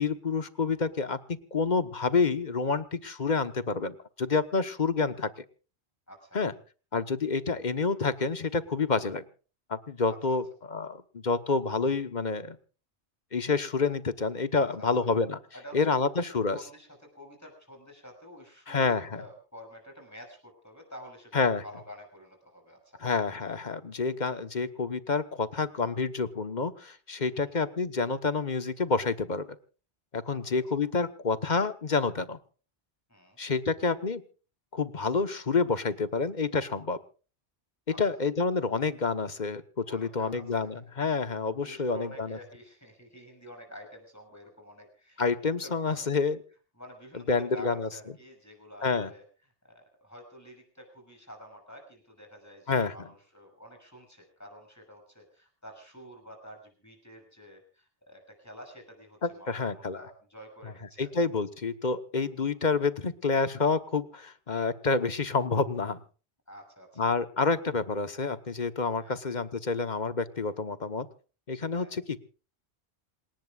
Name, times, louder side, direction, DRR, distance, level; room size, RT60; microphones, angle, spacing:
voice 1, 0.0-5.3 6.3-6.5 6.9-9.2 9.7-12.6 13.3-15.4 15.7-16.6 18.7-19.2 21.3-21.6 23.0-29.5 30.1-32.4 33.4-34.2 34.7-37.0 38.0-42.4 45.2-46.4 47.3-47.9 48.8-49.1 52.7-52.9 59.2-60.0 61.0-66.0 67.0-71.1 71.5-72.3, left 4 dB, 45° left, 11 dB, 1.3 m, -28 dB
voice 2, 6.1-6.4 10.3-10.4 14.5-14.9 15.5-16.9 17.1-23.0 27.3-27.5 30.3-30.6 33.1-33.4 37.9-38.0 39.9-40.9 41.6-45.3 45.6-46.1 46.8-49.2 49.6-61.1 66.5-67.1 69.0-69.2 71.7-71.9, equal, 15° left, 2 dB, 6.9 m, -49 dB
27.5 x 18.5 x 2.4 m, 0.37 s
omnidirectional pair, 1.1 m